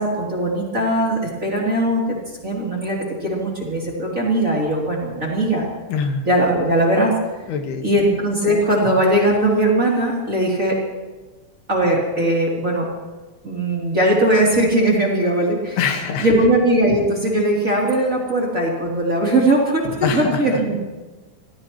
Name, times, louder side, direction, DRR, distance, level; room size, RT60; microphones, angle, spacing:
voice 1, 0.0-5.6 6.2-7.1 7.8-10.8 11.7-12.9 13.4-15.8 16.2-20.8, right 1 dB, 20° right, -4 dB, 2.9 m, -19 dB
voice 2, 5.9-6.3 7.5-7.9 15.8-16.3 20.0-20.4, left 6 dB, 80° left, 4 dB, 3.4 m, -23 dB
26.0 x 18.0 x 3.1 m, 1.2 s
omnidirectional pair, 4.6 m